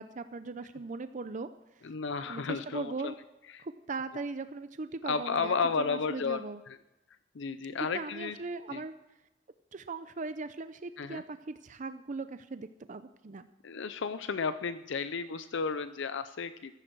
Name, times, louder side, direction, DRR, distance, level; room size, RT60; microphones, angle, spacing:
voice 1, 0.0-1.5 1.8-1.9 2.3-3.2 3.6-6.6 7.8-8.9 9.7-13.5, right 3 dB, 40° right, 11 dB, 0.5 m, -39 dB
voice 2, 1.8-3.1 3.5-3.6 5.1-6.8 7.3-8.4 8.7-8.8 11.0-11.2 13.6-16.7, left 5 dB, 65° left, 12 dB, 0.5 m, -33 dB
15.0 x 15.0 x 4.6 m, 0.98 s
head